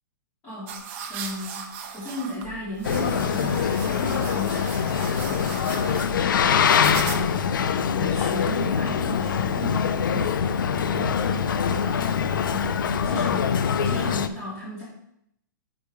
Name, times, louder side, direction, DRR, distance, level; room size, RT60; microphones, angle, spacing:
voice 1, 0.4-4.7 5.2-7.4 7.9-12.2 12.5-14.8, left 1 dB, 20° left, -11 dB, 3.5 m, -36 dB
sound 1, 0.7-7.5, right 7 dB, 35° right, 0.9 m, -38 dB
Boat Water vehicle, 2.8-14.3, left 7 dB, 70° left, 0.6 m, -24 dB
7.9 x 5.1 x 4.7 m, 0.73 s
hypercardioid pair, 170°, 11 cm